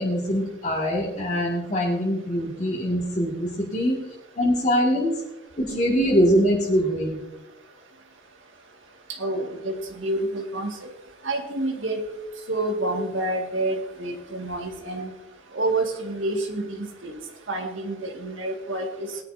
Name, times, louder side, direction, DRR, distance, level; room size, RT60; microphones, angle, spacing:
voice 1, 0.0-4.0 4.4-5.1 5.6-7.2, equal, 40° left, -6 dB, 2.2 m, -23 dB
voice 2, 9.2-10.7 11.2-12.0 12.5-15.1 15.5-17.1 17.5-19.1, right 2 dB, 85° right, 2 dB, 2.0 m, -28 dB
19.5 x 10.5 x 2.7 m, 0.99 s
head